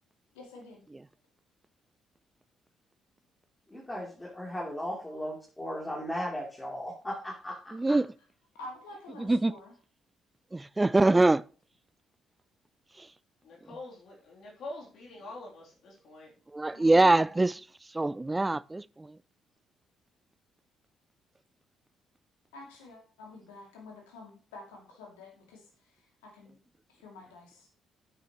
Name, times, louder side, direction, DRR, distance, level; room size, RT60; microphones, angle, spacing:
voice 1, 0.3-0.8 5.1-5.2 8.5-9.7 16.7-17.3 22.5-26.6 26.9-27.7, left 2 dB, 80° left, 2.5 m, -49 dB
voice 2, 3.7-8.0, equal, 15° left, 3.2 m, -37 dB
voice 3, 7.7-8.1 9.3-9.5 10.5-11.4 16.5-17.5 17.9-19.1, right 2 dB, 20° right, 0.4 m, -23 dB
voice 4, 11.0-11.3 13.4-16.3, left 2 dB, 60° left, 3.1 m, -45 dB
9.4 x 9.1 x 3.0 m
hypercardioid pair, 45°, 0 cm